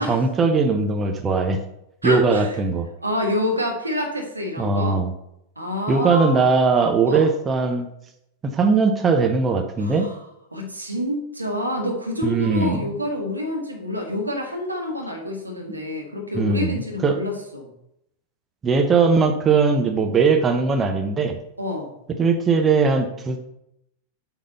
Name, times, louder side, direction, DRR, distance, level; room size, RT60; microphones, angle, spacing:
voice 1, 0.0-1.6 2.0-2.9 4.6-5.1 5.9-7.9 8.4-10.1 12.2-12.9 16.3-17.2 18.6-21.4 22.2-23.4, right 4 dB, 20° right, 5 dB, 0.8 m, -20 dB
voice 2, 2.0-2.6 3.0-5.0 5.6-6.4 7.1-7.3 9.8-10.1 10.5-17.7 21.6-21.9, left 1 dB, 85° right, 2 dB, 1.5 m, -27 dB
8.5 x 4.0 x 5.4 m, 0.78 s
figure-of-eight pair, 90°, 0 cm